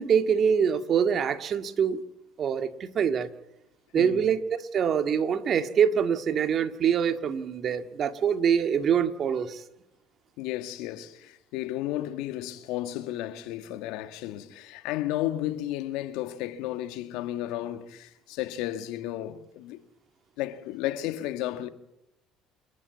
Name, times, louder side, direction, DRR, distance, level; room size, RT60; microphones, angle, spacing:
voice 1, 0.0-2.0 2.4-3.3 3.9-9.6, right 7 dB, 45° right, 2.0 m, -25 dB
voice 2, 3.9-4.3 10.4-19.8 20.4-21.7, left 14 dB, 75° left, 1.8 m, -33 dB
28.5 x 11.0 x 9.5 m
supercardioid pair, 80°, 0 cm